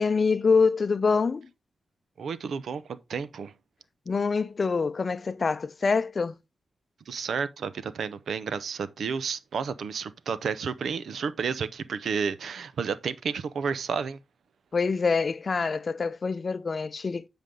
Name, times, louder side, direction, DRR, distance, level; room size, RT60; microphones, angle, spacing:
voice 1, 0.0-1.5 4.1-6.3 14.7-17.3, left 4 dB, 45° left, 0.6 m, -25 dB
voice 2, 2.2-3.5 7.1-14.2, right 6 dB, 85° right, 0.7 m, -31 dB
9.3 x 5.1 x 3.7 m
wide cardioid pair, 120°, 0 cm